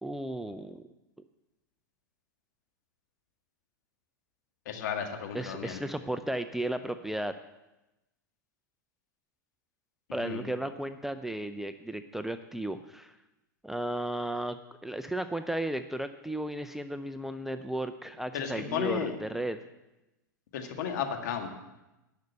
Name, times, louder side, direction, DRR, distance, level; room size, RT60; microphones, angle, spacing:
voice 1, 0.0-0.8 5.3-7.4 10.1-13.2 13.6-14.6 14.8-19.6, right 1 dB, 5° right, 9 dB, 0.5 m, -34 dB
voice 2, 4.7-5.8 10.2-10.5 18.3-19.1 20.5-21.5, left 7 dB, 60° left, 4 dB, 1.9 m, -33 dB
10.5 x 6.5 x 8.2 m, 0.98 s
hypercardioid pair, 100°, 11 cm